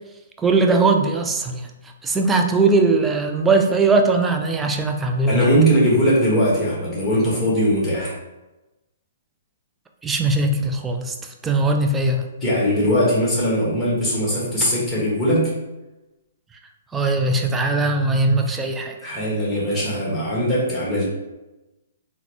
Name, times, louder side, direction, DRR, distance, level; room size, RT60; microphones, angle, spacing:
voice 1, 0.4-1.7 2.0-5.5 10.0-11.2 11.4-12.3 16.9-19.1, right 3 dB, 10° right, 4 dB, 0.4 m, -20 dB
voice 2, 5.3-8.1 12.4-15.5 19.0-21.0, equal, 5° left, -7 dB, 1.5 m, -20 dB
3.8 x 2.2 x 3.0 m, 1.0 s
figure-of-eight pair, 125°, 0 cm